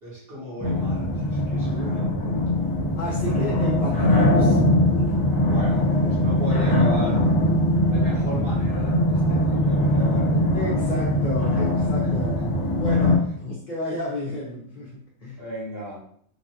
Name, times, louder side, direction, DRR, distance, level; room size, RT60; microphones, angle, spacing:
voice 1, 0.0-2.6 5.5-7.2 7.9-10.3 15.4-16.0, equal, 60° right, -7 dB, 1.3 m, -36 dB
sound 1, 0.6-13.2, left 1 dB, 20° left, 0.8 m, -21 dB
voice 2, 3.0-4.6 4.9-5.1 10.5-12.4 12.7-15.4, left 1 dB, 45° left, -6 dB, 0.9 m, -32 dB
3.1 x 2.4 x 2.8 m, 0.63 s
omnidirectional pair, 1.2 m